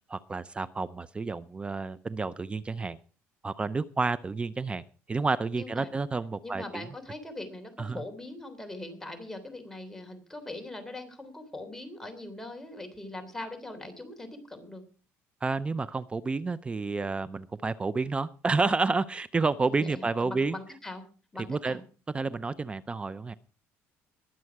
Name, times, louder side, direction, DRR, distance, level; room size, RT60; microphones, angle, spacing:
voice 1, 0.1-3.0 3.4-4.8 5.1-6.9 7.8-8.0 15.4-20.6 21.5-21.8 22.1-23.3, right 4 dB, 20° right, 16 dB, 0.6 m, -30 dB
voice 2, 5.5-5.9 6.4-14.8 19.6-21.0 21.3-21.8, left 2 dB, 5° left, 5 dB, 3.3 m, -41 dB
21.0 x 7.6 x 4.7 m, 0.36 s
cardioid pair, 115°, 5 cm